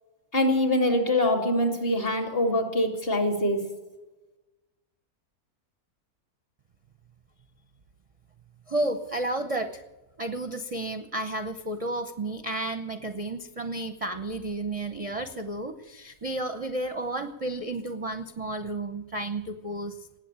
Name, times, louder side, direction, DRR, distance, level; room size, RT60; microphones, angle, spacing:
voice 1, 0.3-3.6, left 1 dB, 35° left, 4 dB, 2.8 m, -24 dB
voice 2, 8.7-9.8 10.2-20.0, right 2 dB, 30° right, 9 dB, 0.7 m, -32 dB
19.0 x 8.1 x 8.8 m, 1.1 s
omnidirectional pair, 1.6 m